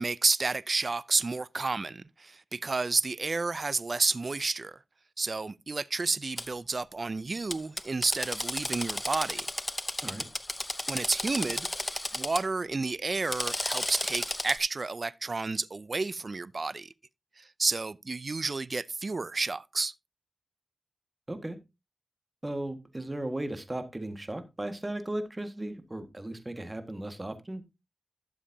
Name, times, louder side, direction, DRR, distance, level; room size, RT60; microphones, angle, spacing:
voice 1, 0.0-4.8 5.2-9.5 10.9-16.9 17.4-19.9, right 3 dB, 50° right, 0.5 m, -31 dB
Drill, 6.4-6.5 7.5-12.4 13.1-14.6, left 1 dB, 20° left, 0.7 m, -33 dB
voice 2, 22.4-27.6, right 1 dB, 25° right, 1.7 m, -36 dB
12.5 x 7.2 x 2.8 m
cardioid pair, 45°, 0 cm